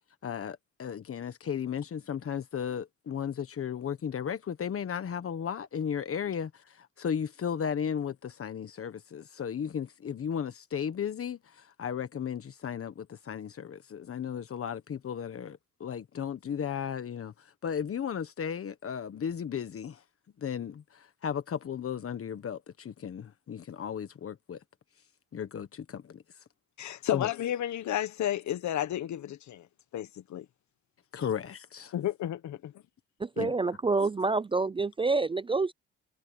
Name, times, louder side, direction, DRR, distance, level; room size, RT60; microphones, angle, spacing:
voice 1, 0.2-20.0 20.4-24.6 25.3-26.2 27.1-27.3 31.1-31.9 33.4-33.5, left 8 dB, 50° left, 1.4 m, -35 dB
voice 2, 26.8-29.7 29.9-30.5 31.9-32.7, left 12 dB, 70° left, 1.4 m, -32 dB
voice 3, 33.2-35.7, right 3 dB, 20° right, 0.4 m, -27 dB
cardioid pair, 90°, 30 cm